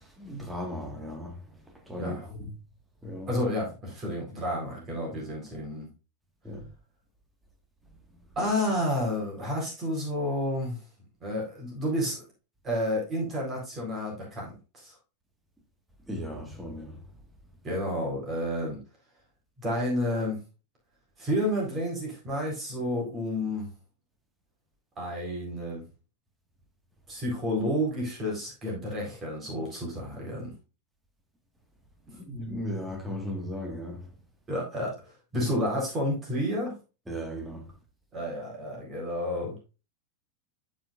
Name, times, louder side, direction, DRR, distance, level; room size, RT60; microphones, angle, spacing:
voice 1, 0.2-1.3 1.9-2.4 3.0-3.3 6.4-6.7 16.1-17.0 32.1-34.1 37.1-37.7, equal, 5° right, 1.7 m, -36 dB
voice 2, 2.0-2.3 3.3-5.9 8.4-10.8 11.2-12.2 12.6-14.9 17.6-18.8 19.6-20.4 21.2-23.7 25.0-25.8 27.1-30.5 34.5-36.8 38.1-39.6, left 1 dB, 25° right, 4.1 m, -30 dB
12.0 x 5.3 x 2.5 m
figure-of-eight pair, 90°, 0 cm